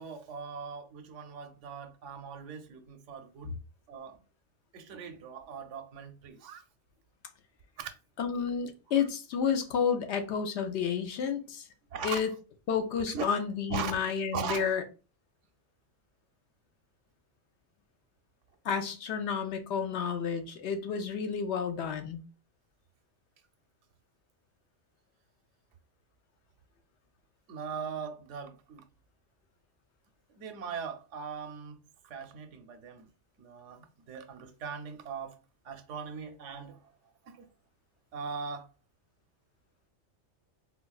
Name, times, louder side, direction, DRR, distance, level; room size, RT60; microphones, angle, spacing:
voice 1, 0.0-3.5 3.9-4.2 4.7-6.6 7.8-7.9 8.9-9.1 11.9-12.2 13.1-13.3 13.7-14.0 14.3-14.7 27.5-28.9 30.3-31.8 32.0-33.1 33.4-35.4 35.6-36.9 37.2-37.5 38.1-38.7, right 6 dB, 85° right, 0.9 m, -40 dB
voice 2, 8.2-11.7 12.0-12.3 12.7-14.8 18.6-22.2, left 7 dB, 70° left, 0.8 m, -31 dB
4.0 x 2.2 x 2.3 m
omnidirectional pair, 1.2 m